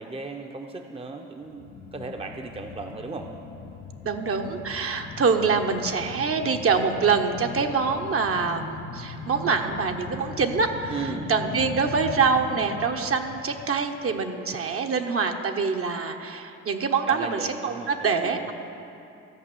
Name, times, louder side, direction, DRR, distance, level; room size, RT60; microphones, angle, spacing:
voice 1, 0.0-3.3 10.9-11.3 17.1-18.5, right 4 dB, 20° right, 4 dB, 0.7 m, -36 dB
sound 1, 1.4-14.7 15.0-15.1, left 5 dB, 80° left, 0.8 m, -40 dB
voice 2, 4.0-18.5, right 5 dB, 50° right, 5 dB, 1.0 m, -25 dB
14.0 x 5.4 x 7.7 m, 2.6 s
cardioid pair, 90°, 30 cm